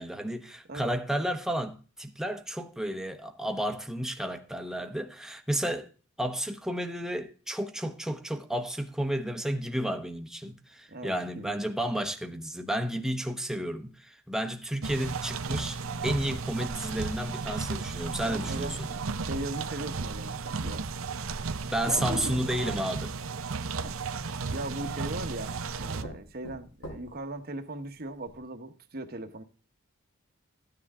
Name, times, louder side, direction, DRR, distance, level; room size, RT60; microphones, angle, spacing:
voice 1, 0.0-5.9 6.2-18.9 21.7-23.1, right 1 dB, ahead, 1.0 m, -32 dB
voice 2, 10.9-11.6 18.2-20.9 21.9-22.4 23.8-29.4, right 2 dB, 45° right, 1.2 m, -39 dB
sound 1, 14.8-26.0, right 4 dB, 65° right, 0.7 m, -34 dB
sound 2, 20.3-21.2 21.9-23.9 24.9-25.0 25.6-25.7 26.0-27.4 27.9-28.0 28.3-28.4, right 1 dB, 65° left, 5.2 m, -44 dB
14.5 x 9.8 x 3.7 m
head